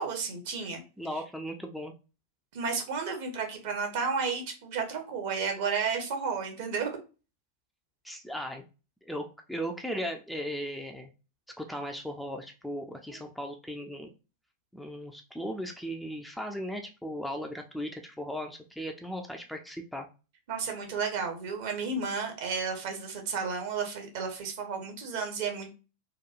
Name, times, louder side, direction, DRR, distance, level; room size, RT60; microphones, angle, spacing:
voice 1, 0.0-0.8 2.5-7.0 13.1-13.2 20.5-25.7, right 5 dB, 50° right, 4 dB, 0.7 m, -32 dB
voice 2, 1.0-1.9 8.0-8.6 9.0-11.1 11.6-14.1 14.7-20.1, equal, ahead, 3 dB, 0.3 m, -37 dB
2.8 x 2.2 x 2.4 m, 0.32 s
figure-of-eight pair, 90°, 0 cm